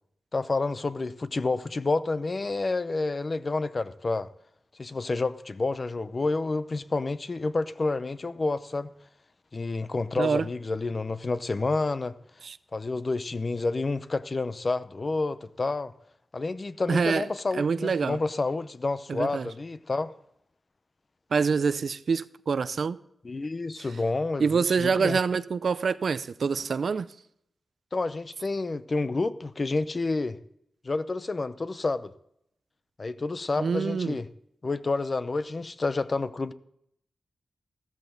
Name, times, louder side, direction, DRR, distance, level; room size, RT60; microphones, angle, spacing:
voice 1, 0.3-4.3 4.8-8.9 9.5-12.1 12.7-15.9 16.3-20.1 23.2-25.2 27.9-30.4 30.8-32.1 33.0-34.3 34.6-36.5, left 3 dB, 35° left, 0.6 m, -29 dB
voice 2, 10.2-10.5 12.4-12.6 16.9-17.3 17.5-18.2 19.1-19.5 21.3-23.0 24.4-27.1 33.6-34.1, right 5 dB, 65° right, 0.5 m, -26 dB
14.0 x 13.5 x 3.9 m
wide cardioid pair, 105°, 0 cm